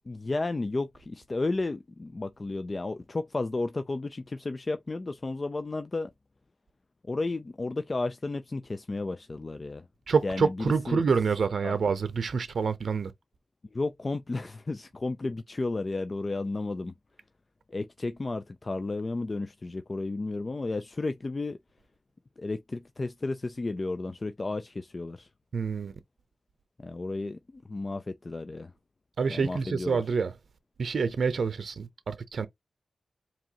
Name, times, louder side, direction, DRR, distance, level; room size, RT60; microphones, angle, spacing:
voice 1, 0.1-6.1 7.1-9.8 10.2-11.0 11.6-11.8 13.7-16.9 17.7-21.6 22.4-25.3 26.8-28.7 29.3-30.0, left 3 dB, 35° left, 0.4 m, -33 dB
voice 2, 10.1-13.1 25.5-25.9 29.2-30.3 30.8-32.5, right 5 dB, 70° right, 0.6 m, -27 dB
4.7 x 2.9 x 2.9 m
wide cardioid pair, 80°, 0 cm